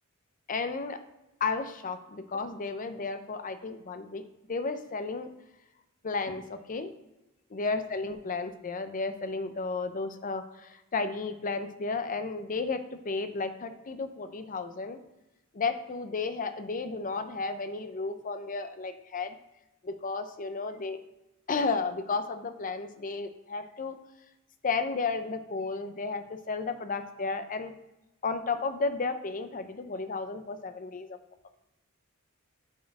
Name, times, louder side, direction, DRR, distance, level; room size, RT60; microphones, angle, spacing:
voice 1, 0.5-1.0 1.4-4.2 4.5-5.3 6.0-6.9 7.5-15.0 15.5-19.3 19.8-21.0 21.5-24.0 24.6-27.7 28.2-31.2, left 4 dB, 40° left, 9 dB, 0.6 m, -33 dB
6.0 x 4.3 x 6.0 m, 0.94 s
head